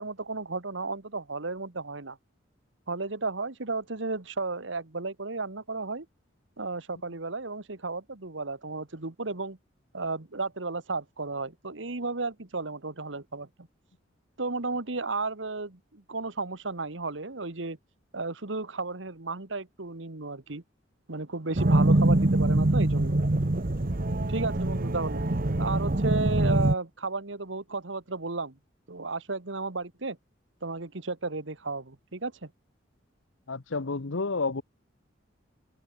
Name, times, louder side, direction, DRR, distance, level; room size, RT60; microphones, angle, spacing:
voice 1, 0.0-2.2 2.9-6.1 6.6-9.6 9.9-13.7 14.4-17.8 18.1-20.6 21.1-23.2 24.3-25.3 25.6-28.6 28.9-30.2 30.6-32.5, right 3 dB, 75° right, 1.7 m, -33 dB
sound 1, 21.5-26.7, right 1 dB, 50° right, 1.2 m, -24 dB
voice 2, 33.5-34.6, left 3 dB, 85° left, 1.0 m, -30 dB
head